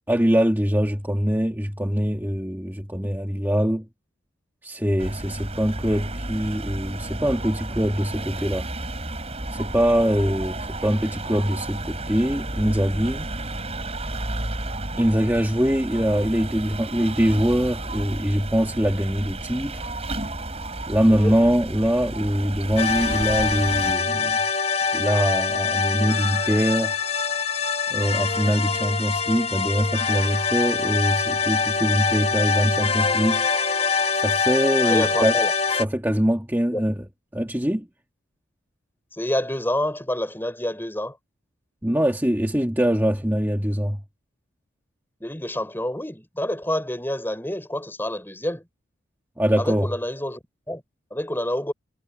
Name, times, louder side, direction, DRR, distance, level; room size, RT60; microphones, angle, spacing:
voice 1, 0.1-3.9 4.6-8.7 9.5-13.3 15.0-19.9 20.9-24.4 24.9-26.9 27.9-33.5 34.1-35.4 35.7-37.1 37.3-37.9 41.8-44.0 49.4-49.9, equal, 10° right, 1.8 m, -23 dB
sound 1, 5.0-24.0, right 2 dB, 30° right, 5.2 m, -32 dB
sound 2, 22.8-35.9, left 5 dB, 30° left, 1.1 m, -24 dB
voice 2, 34.8-35.5 36.7-36.8 39.1-41.1 45.2-48.6 49.6-50.4 50.7-50.8 51.1-51.7, left 1 dB, 10° left, 5.2 m, -27 dB
head